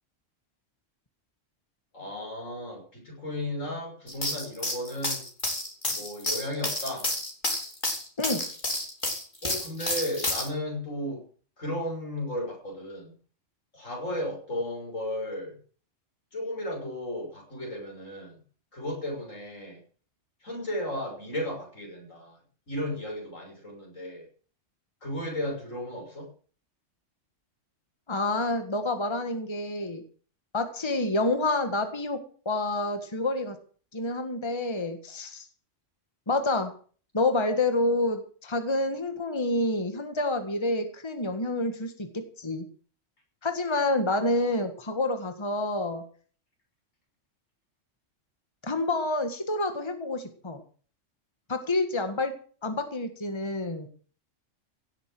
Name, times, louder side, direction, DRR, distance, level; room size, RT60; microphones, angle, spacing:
voice 1, 1.9-5.3 5.9-7.1 9.4-11.2 11.6-13.1 13.7-15.6 16.3-18.4 18.7-19.8 20.4-22.4 22.7-24.3 25.0-26.3, left 1 dB, 85° left, 0 dB, 7.0 m, -34 dB
sound 1, 4.1-10.5, left 1 dB, 40° left, 3.5 m, -30 dB
voice 2, 28.1-30.0 30.5-32.2 32.5-33.6 33.9-35.4 36.3-36.7 37.1-42.7 43.4-46.0 48.6-50.6 51.5-52.3 52.6-53.9, left 2 dB, 20° left, 7 dB, 1.7 m, -28 dB
17.0 x 7.9 x 7.8 m, 0.43 s
omnidirectional pair, 1.3 m